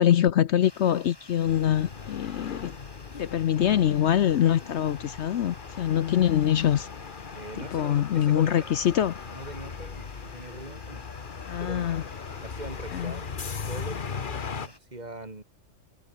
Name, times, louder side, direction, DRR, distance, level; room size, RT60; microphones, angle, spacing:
voice 1, 0.0-2.7 3.2-6.9 7.7-9.1 11.5-12.0 12.9-13.2, left 10 dB, 65° left, 0.9 m, -24 dB
sound 1, 0.6-14.8, left 1 dB, 20° left, 3.2 m, -52 dB
sound 2, 1.4-14.7, left 5 dB, 40° left, 1.3 m, -39 dB
voice 2, 7.3-8.8 9.3-11.1 11.6-11.9 12.4-13.3 13.7-15.4, right 2 dB, 35° right, 3.0 m, -42 dB
omnidirectional pair, 1.3 m